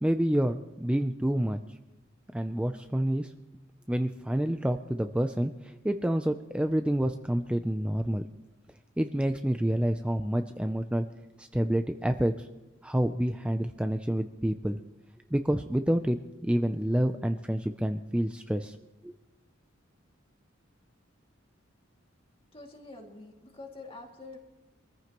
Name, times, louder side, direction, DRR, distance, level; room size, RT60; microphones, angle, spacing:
voice 1, 0.0-1.7 2.3-3.3 3.9-8.2 9.0-11.1 11.4-12.5 12.8-14.8 15.3-18.8 19.0-19.1, right 1 dB, 5° right, 7 dB, 0.4 m, -28 dB
voice 2, 22.5-24.4, left 3 dB, 30° left, 1 dB, 2.4 m, -46 dB
23.5 x 14.5 x 3.0 m, 1.1 s
head